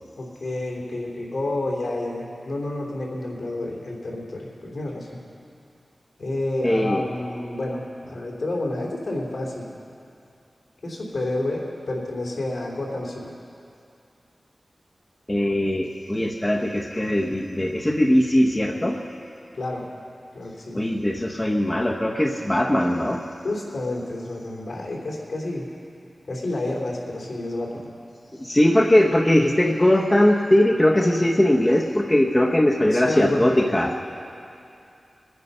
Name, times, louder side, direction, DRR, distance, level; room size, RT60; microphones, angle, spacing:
voice 1, 0.2-5.2 6.2-9.7 10.8-13.3 19.5-19.9 20.3-20.8 23.4-25.7 26.3-27.9 32.9-33.7, left 2 dB, 80° left, -3 dB, 3.4 m, -29 dB
voice 2, 6.6-7.1 15.3-19.0 20.7-23.2 28.4-33.9, left 1 dB, 20° left, 1 dB, 0.9 m, -20 dB
22.0 x 9.7 x 5.5 m, 2.6 s
wide cardioid pair, 100°, 0 cm